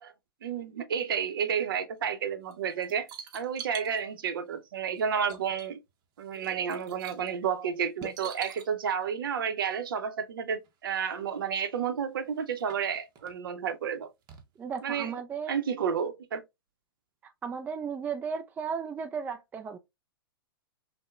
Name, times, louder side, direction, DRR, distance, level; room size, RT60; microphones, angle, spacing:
voice 1, 0.4-3.1 3.3-5.8 6.2-14.1 14.8-15.1 15.5-16.4, right 7 dB, 65° right, 0.7 m, -31 dB
sound 1, 2.5-4.0 5.0-5.1 5.3-5.9 6.2-7.3 8.0-8.7 10.6-10.7 11.0-11.1 11.8-11.9 12.4-13.3 14.3-14.4 14.8-14.9, right 7 dB, 30° right, 0.8 m, -44 dB
voice 2, 14.6-15.5 17.4-19.8, right 6 dB, 15° right, 0.3 m, -35 dB
5.6 x 2.2 x 2.3 m
hypercardioid pair, 110°, 12 cm